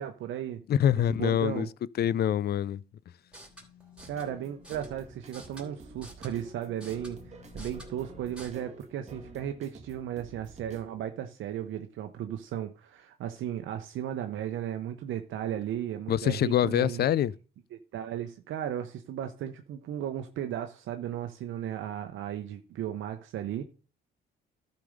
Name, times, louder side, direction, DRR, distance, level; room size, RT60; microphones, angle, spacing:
voice 1, 0.0-0.6 1.1-1.7 4.1-17.0 17.7-23.6, right 10 dB, 80° right, 0.8 m, -35 dB
voice 2, 0.7-1.7 2.0-2.8 16.1-17.3, left 10 dB, 55° left, 0.4 m, -25 dB
sound 1, 3.2-8.5, left 1 dB, 5° right, 3.2 m, -50 dB
sound 2, 4.0-10.9, right 2 dB, 35° right, 2.0 m, -49 dB
12.0 x 5.2 x 5.1 m
cardioid pair, 90°, 20 cm